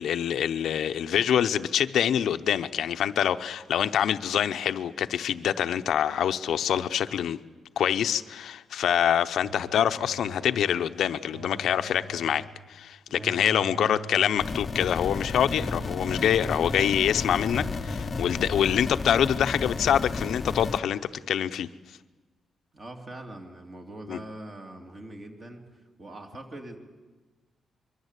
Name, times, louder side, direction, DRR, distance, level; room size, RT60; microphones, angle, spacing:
voice 1, 0.0-7.4 7.8-12.4 12.7-21.0 21.3-21.7 24.1-24.2, left 9 dB, 75° left, 10 dB, 0.8 m, -25 dB
sound 1, 9.4-10.8 11.3-12.7 13.2-14.6 15.1-17.0 17.5-18.8, right 3 dB, 55° right, 1.5 m, -44 dB
voice 2, 13.1-13.4 22.7-26.8, right 1 dB, 30° right, 3 dB, 3.0 m, -43 dB
sound 2, 14.4-20.8, left 4 dB, 30° left, 0.8 m, -32 dB
24.5 x 23.0 x 8.3 m, 1.3 s
wide cardioid pair, 165°, 0 cm